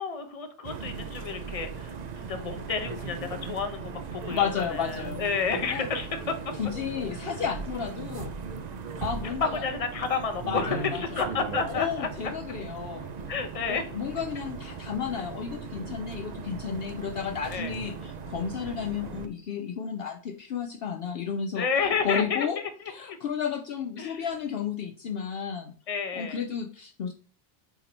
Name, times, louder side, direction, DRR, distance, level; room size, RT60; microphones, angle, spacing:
voice 1, 0.0-6.4 9.2-12.1 13.3-13.9 17.5-17.7 21.6-22.7 24.0-24.3 25.9-26.4, left 5 dB, 35° left, 6 dB, 0.8 m, -30 dB
sound 1, 0.6-19.3, right 5 dB, 50° right, 0.5 m, -38 dB
voice 2, 4.3-5.2 5.7-5.9 6.6-8.4 9.0-9.6 10.4-11.3 11.7-13.1 13.7-21.7 22.0-22.6 22.9-25.7 26.2-27.1, left 7 dB, 65° left, 5 dB, 0.7 m, -32 dB
8.5 x 2.9 x 4.0 m, 0.43 s
omnidirectional pair, 1.2 m